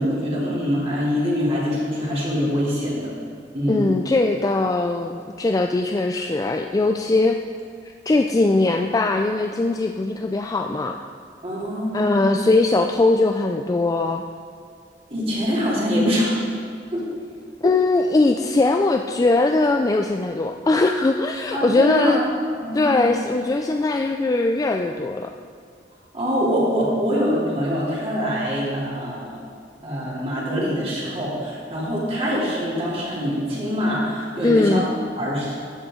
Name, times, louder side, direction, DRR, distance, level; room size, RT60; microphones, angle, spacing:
voice 1, 0.0-3.1 3.5-3.9 11.4-12.4 15.1-16.4 16.9-17.0 17.6-17.7 21.5-22.2 22.6-23.1 26.1-29.3 29.8-34.9 35.2-35.6, equal, 35° right, -7 dB, 2.8 m, -24 dB
voice 2, 3.7-7.4 8.1-11.0 11.9-14.2 17.6-22.2 22.7-25.3 34.4-34.9, left 2 dB, 20° left, 4 dB, 0.3 m, -20 dB
13.0 x 7.8 x 3.7 m, 2.1 s
head